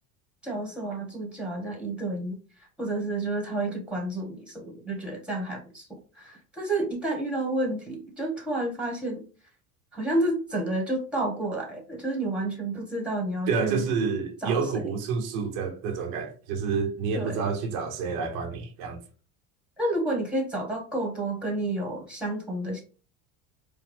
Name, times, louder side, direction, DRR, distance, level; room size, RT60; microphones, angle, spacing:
voice 1, 0.4-2.4 2.8-5.9 6.2-9.2 9.9-13.9 14.4-14.8 17.1-17.5 19.8-22.8, right 2 dB, 5° right, 1.8 m, -30 dB
voice 2, 13.5-19.0, right 5 dB, 75° right, 1.1 m, -29 dB
4.8 x 2.3 x 3.5 m
supercardioid pair, 105°, 41 cm